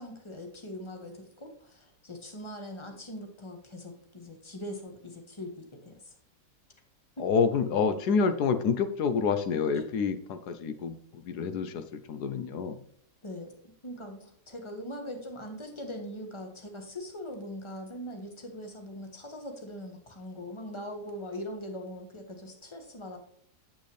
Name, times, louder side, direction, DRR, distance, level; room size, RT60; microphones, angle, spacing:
voice 1, 0.0-6.1 7.2-7.3 9.7-9.8 13.2-13.5 13.8-23.2, left 1 dB, 20° left, 4 dB, 1.6 m, -41 dB
voice 2, 7.2-12.8, left 5 dB, 80° left, 9 dB, 1.3 m, -28 dB
9.0 x 8.4 x 3.3 m, 0.64 s
omnidirectional pair, 1.7 m